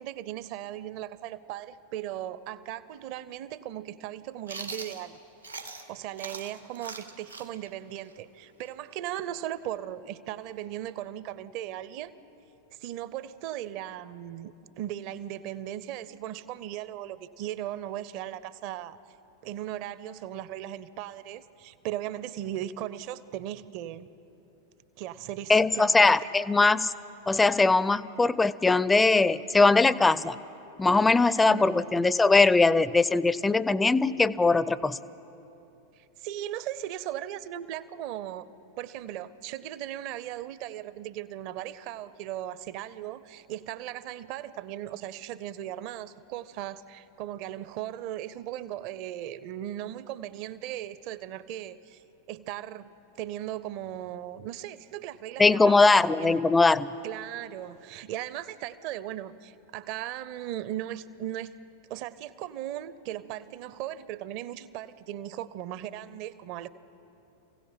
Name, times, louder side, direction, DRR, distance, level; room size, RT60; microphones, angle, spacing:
voice 1, 0.0-5.2 5.7-12.1 12.8-19.0 19.4-24.1 25.0-26.1 31.5-31.7 36.0-38.5 38.8-52.0 52.3-52.9 53.2-56.5 57.0-61.5 61.9-66.7, right 12 dB, 45° right, 17 dB, 0.7 m, -37 dB
Chewing mastication, 4.5-5.9 6.2-9.8, right 3 dB, 85° right, 1.4 m, -42 dB
voice 2, 25.5-26.9 27.3-30.4 30.8-35.0 55.4-56.9, left 3 dB, 10° left, 18 dB, 0.4 m, -21 dB
28.0 x 16.5 x 5.8 m, 2.9 s
figure-of-eight pair, 90°, 0 cm